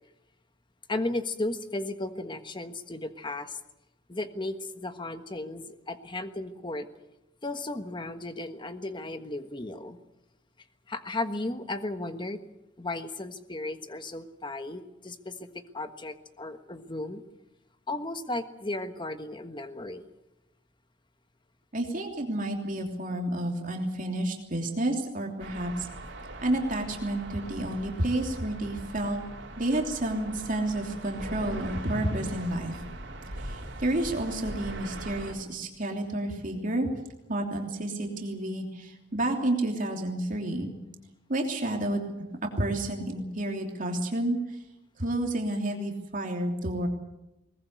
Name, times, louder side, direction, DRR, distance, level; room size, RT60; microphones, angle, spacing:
voice 1, 0.9-3.6 4.1-6.9 7.4-10.0 10.9-12.4 12.8-17.2 17.9-20.1, left 2 dB, 25° left, 9 dB, 1.4 m, -35 dB
voice 2, 21.7-25.9 26.4-29.2 29.6-32.7 33.4-36.9 37.3-40.7 41.3-42.1 42.6-44.4 45.0-46.9, right 1 dB, 45° right, 2 dB, 3.1 m, -30 dB
sound 1, 25.4-35.3, right 1 dB, 65° right, 4.1 m, -41 dB
21.5 x 19.5 x 8.1 m, 0.93 s
head